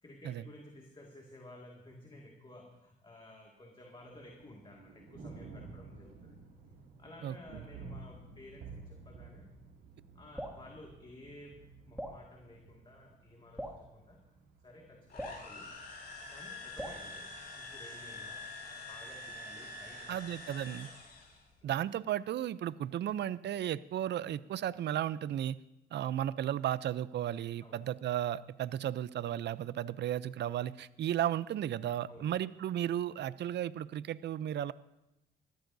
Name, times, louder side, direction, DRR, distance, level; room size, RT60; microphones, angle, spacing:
voice 1, 0.0-6.4 7.0-9.5 10.1-14.3 14.6-15.8 16.3-18.5 18.9-20.2 20.8-20.9 21.6-21.7 27.6-27.8 32.1-32.3, left 1 dB, 25° left, 0 dB, 2.0 m, -54 dB
Thunder, 4.0-21.9, right 4 dB, 85° right, 2.3 m, -54 dB
Drip, 10.4-10.6 12.0-12.2 13.6-13.8 15.2-15.4 16.8-17.0, equal, 5° right, 2.1 m, -41 dB
sound 1, 15.1-21.4, left 2 dB, 55° left, 4.3 m, -46 dB
voice 2, 20.1-20.9 21.6-25.6 25.9-34.7, right 11 dB, 65° right, 18 dB, 0.5 m, -34 dB
21.0 x 14.0 x 2.7 m, 0.95 s
cardioid pair, 75°, 20 cm